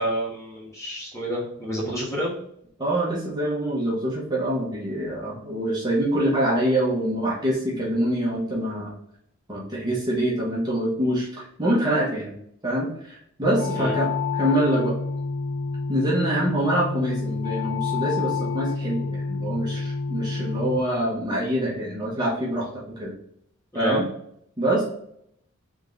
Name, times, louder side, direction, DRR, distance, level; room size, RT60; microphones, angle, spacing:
voice 1, 0.0-2.3 13.7-13.9 23.7-24.0, right 1 dB, 15° left, -6 dB, 1.4 m, -28 dB
voice 2, 2.8-8.9 9.5-12.3 12.6-14.1 14.4-14.9 15.9-23.1 23.7-24.1 24.6-24.8, right 1 dB, 20° right, -5 dB, 1.2 m, -25 dB
sound 1, 13.4-20.8, left 4 dB, 50° left, 0.5 m, -28 dB
3.7 x 3.6 x 3.8 m, 0.71 s
head